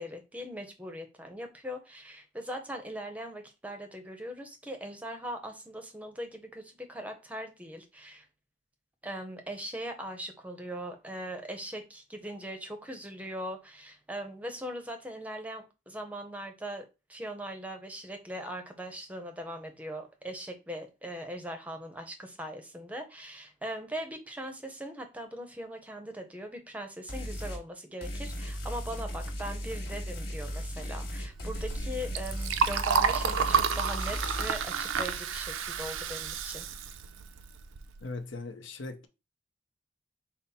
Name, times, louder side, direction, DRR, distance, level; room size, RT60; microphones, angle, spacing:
voice 1, 0.0-8.3 9.0-36.7, equal, 10° right, 0.6 m, -40 dB
sound 1, 27.1-27.6 28.0-34.5, equal, 55° left, 1.5 m, -36 dB
Liquid, 31.3-38.0, right 6 dB, 90° right, 0.5 m, -30 dB
voice 2, 38.0-39.1, left 3 dB, 75° left, 0.7 m, -39 dB
5.6 x 2.0 x 4.1 m
head